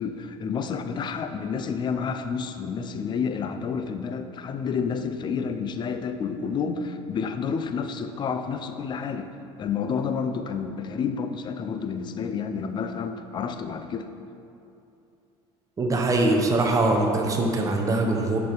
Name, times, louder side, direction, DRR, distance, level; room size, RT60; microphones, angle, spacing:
voice 1, 0.0-9.3 9.6-14.1, left 6 dB, 35° left, 8 dB, 0.5 m, -30 dB
voice 2, 15.8-18.4, right 2 dB, 25° right, 2 dB, 0.9 m, -22 dB
6.4 x 5.1 x 4.6 m, 2.7 s
supercardioid pair, 110°, 14 cm